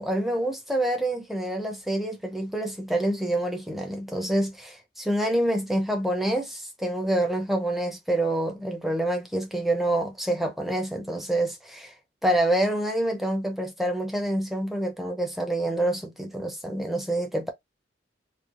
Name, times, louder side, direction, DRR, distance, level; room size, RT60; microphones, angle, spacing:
voice 1, 0.0-11.9 12.2-17.5, right 1 dB, ahead, 0.5 m, -27 dB
3.1 x 2.4 x 2.4 m
head